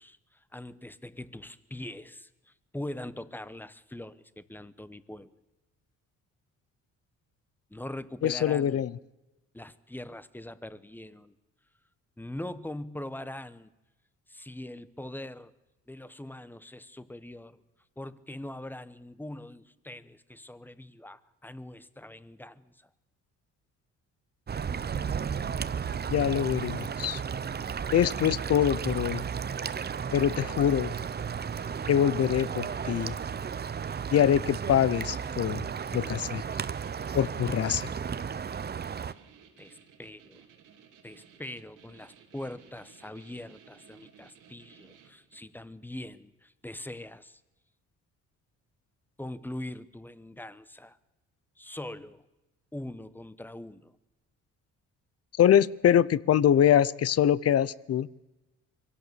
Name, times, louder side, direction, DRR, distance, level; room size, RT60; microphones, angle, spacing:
voice 1, 0.0-5.3 7.7-8.8 9.5-11.3 12.2-13.7 14.3-15.5 15.9-17.6 18.0-22.9 39.6-40.4 41.0-47.4 49.2-51.0 51.6-52.2 52.7-54.0, left 1 dB, 5° left, 15 dB, 1.0 m, -42 dB
voice 2, 8.2-8.9 26.1-27.2 27.9-29.2 30.1-30.9 31.9-33.1 34.1-35.6 35.9-36.4 37.1-37.9 55.4-58.1, left 10 dB, 55° left, 20 dB, 0.7 m, -24 dB
sound 1, 24.5-39.1, right 7 dB, 35° right, 0.8 m, -34 dB
sound 2, 27.8-45.5, right 7 dB, 90° right, 2.9 m, -57 dB
23.5 x 17.0 x 6.9 m, 1.0 s
cardioid pair, 90°, 30 cm